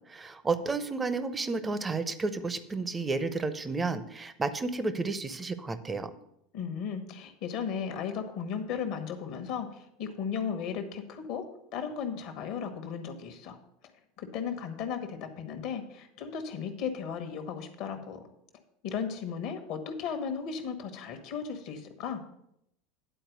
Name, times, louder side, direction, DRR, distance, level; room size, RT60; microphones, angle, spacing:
voice 1, 0.1-6.1, right 3 dB, 20° right, 12 dB, 0.7 m, -31 dB
voice 2, 6.5-11.5 11.7-13.6 14.2-18.2 18.8-22.2, left 6 dB, 50° left, 6 dB, 1.2 m, -35 dB
10.0 x 4.4 x 6.5 m, 0.79 s
figure-of-eight pair, 75°, 0 cm